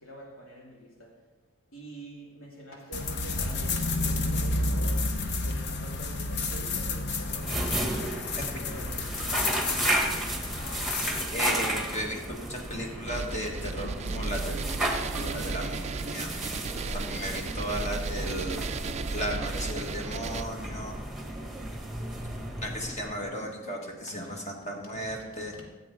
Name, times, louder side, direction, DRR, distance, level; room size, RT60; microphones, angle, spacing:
voice 1, 0.0-1.1 1.7-5.1 5.4-7.5 8.0-11.3 17.2-17.5 24.1-24.4 25.5-25.6, equal, 85° left, 2.8 m, -47 dB
sound 1, 2.9-11.3, left 2 dB, 55° left, 0.8 m, -31 dB
sound 2, 7.3-23.4, right 1 dB, ahead, 1.3 m, -34 dB
voice 2, 11.3-14.7 15.1-16.3 16.9-18.6 19.1-21.0 22.6-25.5, equal, 35° left, 1.5 m, -35 dB
sound 3, 13.1-20.4, right 4 dB, 30° right, 0.4 m, -34 dB
15.0 x 7.7 x 3.8 m
head